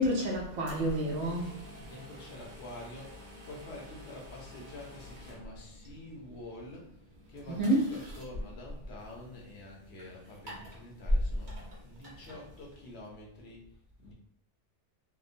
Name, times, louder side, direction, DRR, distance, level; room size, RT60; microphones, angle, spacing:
voice 1, 0.0-1.5 7.5-8.0, equal, 70° right, 1.0 m, -29 dB
sound 1, 0.6-13.1, left 1 dB, 45° right, 0.8 m, -41 dB
voice 2, 1.8-6.9 7.3-11.5 11.8-13.7 14.0-14.1, left 1 dB, 65° left, 0.9 m, -47 dB
2.7 x 2.0 x 2.5 m
omnidirectional pair, 1.2 m